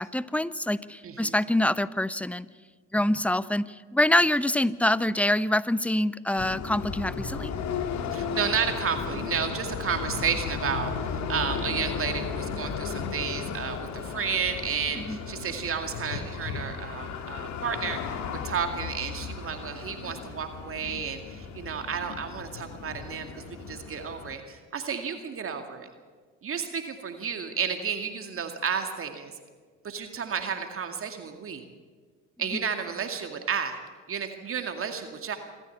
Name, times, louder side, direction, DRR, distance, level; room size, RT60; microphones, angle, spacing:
voice 1, 0.0-2.5 2.9-7.5 15.0-15.2, left 1 dB, 5° left, 17 dB, 0.7 m, -25 dB
voice 2, 1.0-1.4 8.1-18.0 18.3-25.9 26.4-29.3 29.8-31.6 32.4-33.8 34.1-35.4, right 6 dB, 35° right, 5 dB, 2.3 m, -32 dB
sound 1, 6.4-24.4, left 6 dB, 45° left, 2.1 m, -35 dB
26.5 x 14.0 x 8.5 m, 1.5 s
hypercardioid pair, 65°, 37 cm